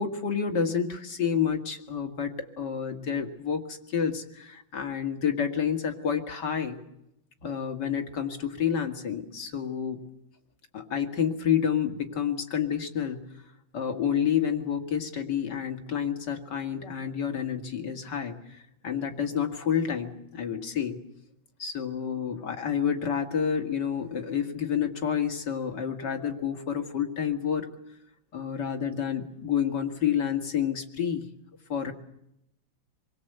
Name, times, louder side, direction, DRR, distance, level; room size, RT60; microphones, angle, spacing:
voice 1, 0.0-6.8 7.4-10.0 10.7-13.2 13.7-21.0 21.6-27.7 28.3-31.3 31.7-31.9, left 8 dB, 60° left, 5 dB, 2.9 m, -29 dB
27.5 x 23.0 x 8.1 m, 0.79 s
omnidirectional pair, 2.1 m